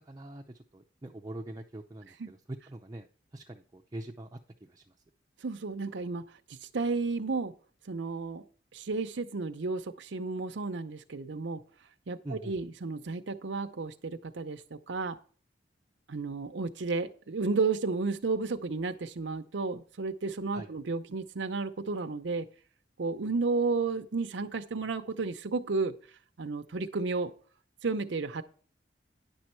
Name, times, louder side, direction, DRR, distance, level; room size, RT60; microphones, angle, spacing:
voice 1, 0.1-3.1 3.3-4.9 12.2-12.5 20.5-20.7, right 1 dB, 20° right, 2 dB, 0.5 m, -43 dB
voice 2, 5.4-6.2 6.5-7.5 7.9-8.4 8.7-11.6 12.1-15.2 16.1-22.5 23.0-25.9 26.4-27.3 27.8-28.4, right 4 dB, 90° right, 7 dB, 0.7 m, -32 dB
10.5 x 6.3 x 4.4 m, 0.42 s
head